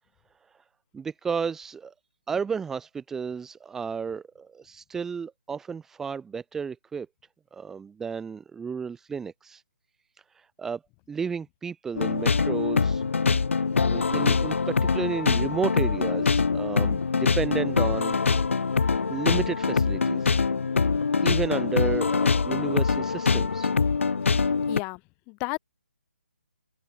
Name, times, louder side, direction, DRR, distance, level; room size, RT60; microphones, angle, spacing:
voice 1, 0.9-1.9 2.3-7.1 7.5-9.6 10.4-10.8 11.1-13.0 13.8-18.2 18.8-20.4 21.2-23.7, right 6 dB, 5° right, 1.6 m, -32 dB
sound 1, 11.9-24.8, left 5 dB, 75° left, 0.9 m, -24 dB
voice 2, 24.3-25.0 25.3-25.6, left 30 dB, 20° left, 3.0 m, -33 dB
hypercardioid pair, 165°, 7 cm